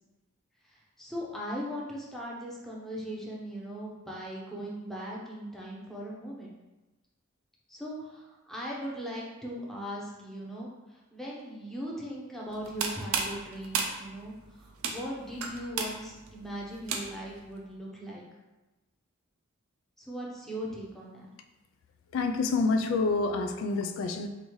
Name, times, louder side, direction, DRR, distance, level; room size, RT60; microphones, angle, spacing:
voice 1, 1.0-6.5 7.7-10.7 11.1-18.2 20.0-21.3, equal, ahead, 0.8 m, -39 dB
sound 1, 12.5-17.4, right 5 dB, 90° right, 0.5 m, -34 dB
voice 2, 22.1-24.3, left 3 dB, 70° left, 0.3 m, -27 dB
5.1 x 2.6 x 3.1 m
head